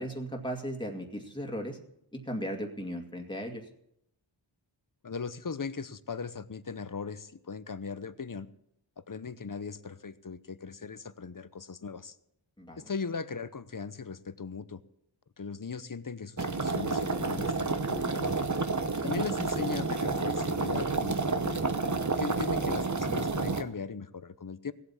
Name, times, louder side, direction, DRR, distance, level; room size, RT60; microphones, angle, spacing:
voice 1, 0.0-1.8 2.1-3.6 12.6-12.8 19.0-19.1, equal, 10° left, 1 dB, 2.2 m, -36 dB
voice 2, 5.0-8.5 9.1-12.2 12.8-14.8 15.4-18.4 19.0-21.6 22.1-24.7, left 5 dB, 40° left, 14 dB, 0.8 m, -38 dB
sound 1, 16.4-23.6, right 3 dB, 35° right, 1.1 m, -30 dB
17.0 x 8.2 x 7.2 m, 0.77 s
wide cardioid pair, 45°, 48 cm